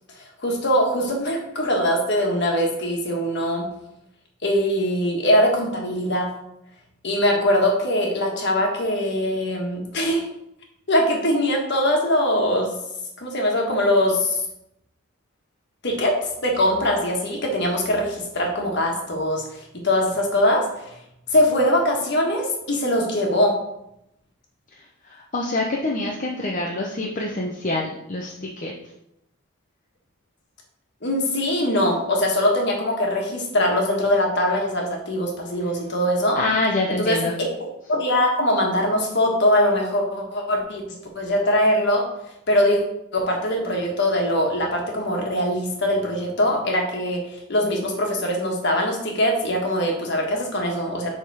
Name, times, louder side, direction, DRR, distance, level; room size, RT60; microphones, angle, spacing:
voice 1, 0.4-3.7 4.4-6.3 7.0-10.2 10.9-12.7 13.2-14.4 15.8-20.7 21.3-23.6 31.0-36.4 37.0-40.8 41.1-42.0 42.5-42.8 43.1-47.2 47.5-51.2, left 1 dB, 55° left, 1 dB, 1.4 m, -22 dB
voice 2, 25.0-28.7 36.4-37.4, left 2 dB, 35° left, -2 dB, 0.6 m, -26 dB
7.0 x 3.6 x 4.7 m, 0.82 s
head